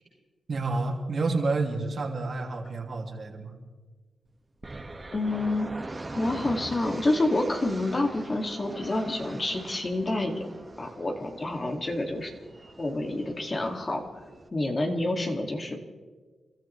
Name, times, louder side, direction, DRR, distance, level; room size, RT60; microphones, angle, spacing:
voice 1, 0.5-3.5, right 3 dB, 60° right, 1 dB, 2.6 m, -29 dB
sound 1, 4.6-14.5, right 2 dB, 30° right, 1.9 m, -42 dB
voice 2, 5.1-5.7 6.1-10.5 10.8-12.3 12.8-14.0 14.5-15.8, left 2 dB, 40° left, 2 dB, 2.5 m, -28 dB
29.5 x 13.5 x 3.4 m, 1.4 s
cardioid pair, 55°, 0 cm